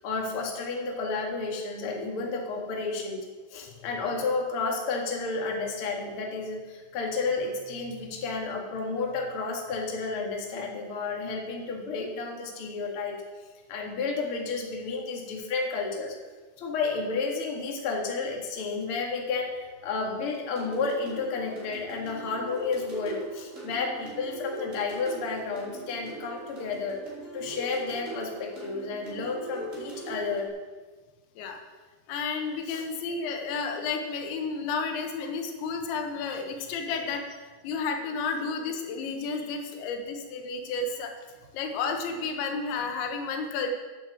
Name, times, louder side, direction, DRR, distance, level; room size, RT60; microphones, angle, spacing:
voice 1, 0.0-3.2 3.5-13.2 13.7-16.2 16.6-27.0 27.3-30.5 32.7-32.8, left 4 dB, 40° left, 0 dB, 2.1 m, -31 dB
sound 1, 20.5-30.5, right 2 dB, 20° right, 3.0 m, -41 dB
voice 2, 32.1-41.1 41.5-43.7, left 4 dB, 90° left, 4 dB, 3.6 m, -32 dB
9.4 x 9.3 x 7.7 m, 1.3 s
omnidirectional pair, 5.0 m